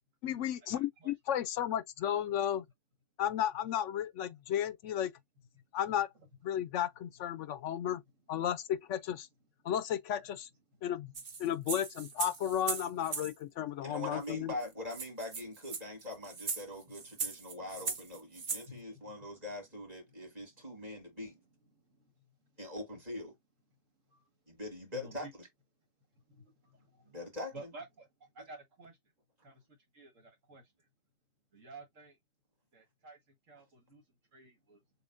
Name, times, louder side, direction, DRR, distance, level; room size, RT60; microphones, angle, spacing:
voice 1, 0.2-2.6 3.2-5.1 5.7-6.1 6.4-8.0 8.3-9.3 9.6-10.5 10.8-11.1 11.4-14.5, left 10 dB, 75° left, 0.9 m, -33 dB
sound 1, 11.2-13.3 14.3-14.4 14.6-14.7 14.9-18.7, right 5 dB, 50° right, 1.1 m, -39 dB
voice 2, 13.8-21.4 22.6-23.4 24.5-25.5 27.1-27.7 28.4-28.5, left 1 dB, 30° right, 2.8 m, -43 dB
voice 3, 25.0-25.3 26.3-26.4 27.5-28.1 28.4-29.0 29.4-29.5 29.9-30.6 31.5-32.1 32.7-33.2 33.5-34.0 34.3-34.8, right 2 dB, 75° right, 2.1 m, -51 dB
6.9 x 2.5 x 2.5 m
omnidirectional pair, 1.3 m